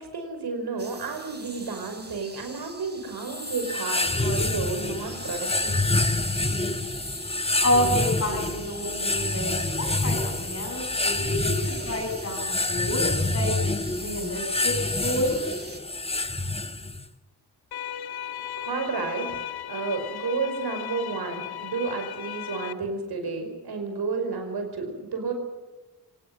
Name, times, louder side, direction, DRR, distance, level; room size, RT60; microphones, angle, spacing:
voice 1, 0.0-5.9 18.6-19.3 19.7-25.3, right 4 dB, 70° right, 5 dB, 5.2 m, -31 dB
sound 1, 0.8-15.8, right 3 dB, 25° right, 3.8 m, -45 dB
sound 2, 3.2-17.1, left 2 dB, 15° left, 1.2 m, -27 dB
voice 2, 7.6-13.6 13.9-15.4, left 1 dB, 35° left, 2 dB, 7.5 m, -29 dB
sound 3, 17.7-22.7, left 10 dB, 70° left, 1.0 m, -36 dB
24.0 x 19.5 x 7.8 m, 1.1 s
wide cardioid pair, 110°, 40 cm